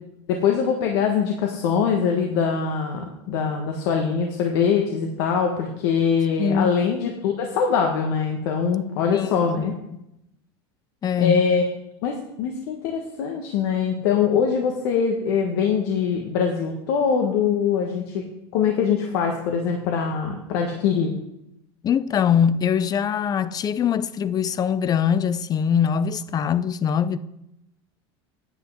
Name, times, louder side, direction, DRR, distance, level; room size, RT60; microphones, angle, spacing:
voice 1, 0.3-9.8 11.2-11.6 12.0-18.2 18.5-21.1, left 6 dB, 70° left, 1.5 m, -23 dB
voice 2, 6.4-6.8 9.1-9.8 11.0-11.5 21.8-27.2, left 8 dB, 30° left, 0.5 m, -22 dB
9.7 x 7.8 x 6.4 m
supercardioid pair, 120°, 14 cm